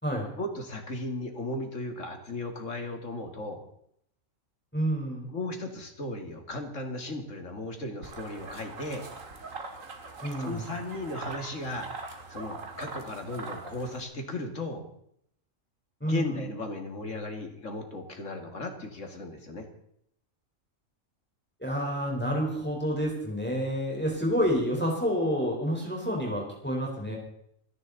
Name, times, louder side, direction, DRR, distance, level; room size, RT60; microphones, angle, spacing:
voice 1, 0.4-3.6 5.3-9.1 10.4-11.9 12.3-14.9 16.0-19.7, left 2 dB, 70° left, 4 dB, 2.6 m, -36 dB
voice 2, 4.7-5.3 10.2-10.6 16.0-16.4 21.6-27.2, equal, 10° left, -1 dB, 4.1 m, -29 dB
sound 1, 8.0-14.0, right 3 dB, 75° right, 2.2 m, -42 dB
28.5 x 11.0 x 4.1 m, 0.70 s
omnidirectional pair, 1.4 m